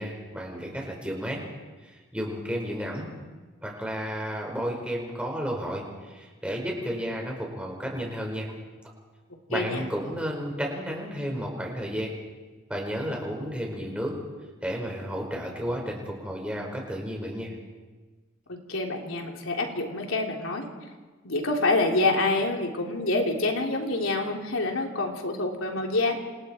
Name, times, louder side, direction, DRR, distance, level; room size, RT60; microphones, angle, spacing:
voice 1, 0.0-1.4 1.8-3.1 3.6-8.5 9.5-12.1 12.7-14.2 14.6-17.5, equal, 5° right, 0 dB, 4.9 m, -32 dB
voice 2, 9.5-9.8 18.5-20.7 21.2-26.2, left 2 dB, 85° left, 1 dB, 3.5 m, -27 dB
28.0 x 28.0 x 4.5 m, 1.3 s
head